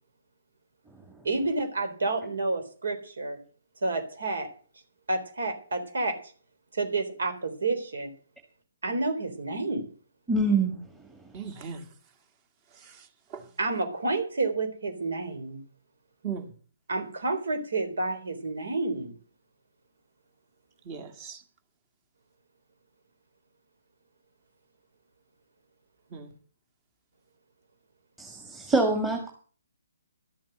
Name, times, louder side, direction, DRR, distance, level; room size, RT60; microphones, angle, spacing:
voice 1, 1.2-3.4 3.8-4.5 5.1-6.3 6.7-8.1 8.8-9.9 13.6-15.6 16.9-19.1, right 3 dB, 65° right, 8 dB, 3.8 m, -29 dB
voice 2, 10.3-10.8 28.2-29.3, right 2 dB, 5° right, 4 dB, 2.0 m, -25 dB
voice 3, 11.3-11.9 12.7-13.5 16.2-16.5 20.8-21.4 26.1-26.3, right 7 dB, 30° right, 7 dB, 2.2 m, -39 dB
13.0 x 7.6 x 8.0 m, 0.42 s
figure-of-eight pair, 140°, 0 cm